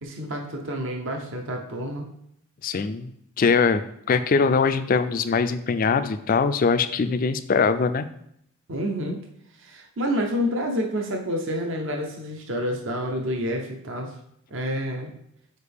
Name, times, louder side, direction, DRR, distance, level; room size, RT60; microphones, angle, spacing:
voice 1, 0.0-2.1 8.7-9.2 9.6-14.1 14.5-15.1, equal, 55° right, 2 dB, 0.7 m, -28 dB
voice 2, 2.6-3.1 3.4-8.1, left 5 dB, 40° left, 11 dB, 0.3 m, -22 dB
6.5 x 4.6 x 3.5 m, 0.72 s
head